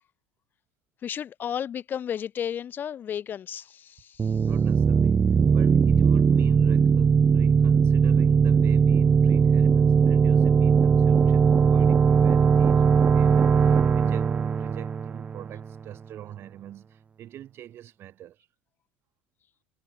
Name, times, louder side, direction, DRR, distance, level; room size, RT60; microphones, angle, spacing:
voice 1, 1.0-4.4, left 9 dB, 35° left, 3.6 m, -33 dB
sound 1, 4.2-15.8, right 6 dB, 25° right, 1.0 m, -20 dB
voice 2, 4.4-18.5, right 12 dB, 45° right, 5.3 m, -44 dB
supercardioid pair, 120°, 6 cm